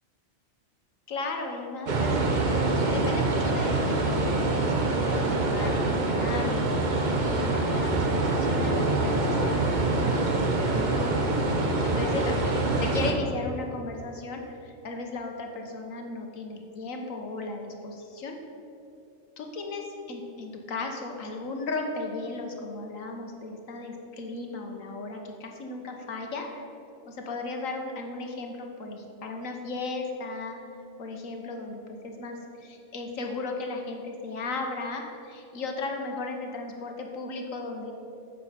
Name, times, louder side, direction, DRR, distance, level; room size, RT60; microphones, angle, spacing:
voice 1, 1.1-11.2 11.6-18.4 19.4-26.7 27.1-30.6 31.0-37.9, left 3 dB, 85° left, 3 dB, 1.6 m, -36 dB
sound 1, 1.9-13.1, right 2 dB, 40° right, 1.0 m, -25 dB
8.9 x 7.3 x 5.7 m, 2.7 s
omnidirectional pair, 1.3 m